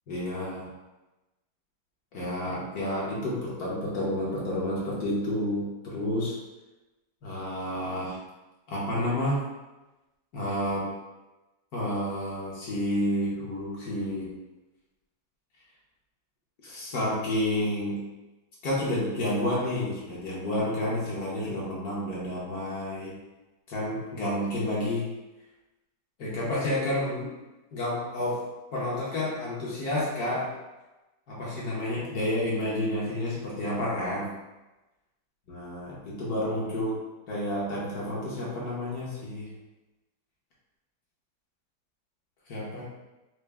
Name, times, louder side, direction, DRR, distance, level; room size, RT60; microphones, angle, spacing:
voice 1, 0.1-0.7 2.1-6.4 7.2-8.2 8.7-9.4 10.3-10.9 11.7-14.3 16.6-18.0 18.6-23.1 23.7-25.1 26.2-27.3 27.7-28.4 28.7-30.5 31.3-34.3 35.5-37.0 37.3-39.5 42.5-42.8, left 1 dB, 60° left, -6 dB, 1.3 m, -30 dB
4.3 x 2.1 x 3.4 m, 1.1 s
omnidirectional pair, 2.0 m